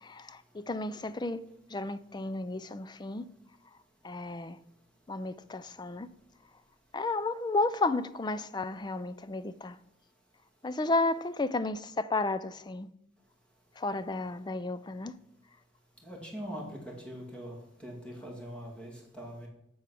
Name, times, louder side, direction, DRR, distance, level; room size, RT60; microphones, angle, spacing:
voice 1, 0.0-1.4 1.7-3.2 4.0-4.6 5.1-6.1 6.9-9.8 10.6-12.9 13.8-15.1, left 2 dB, 25° left, 0.4 m, -32 dB
voice 2, 16.0-17.6 17.8-19.5, equal, 5° left, 2.2 m, -42 dB
8.2 x 7.1 x 6.1 m
head